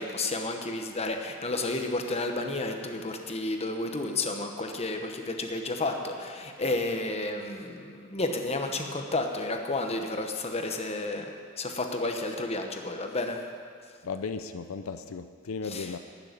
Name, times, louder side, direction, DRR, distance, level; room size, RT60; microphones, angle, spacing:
voice 1, 0.0-11.3 11.6-13.4 15.6-15.9, left 2 dB, 30° left, 4 dB, 1.0 m, -31 dB
voice 2, 14.0-16.0, left 4 dB, 90° left, 10 dB, 0.5 m, -35 dB
12.0 x 6.8 x 9.1 m, 2.1 s
head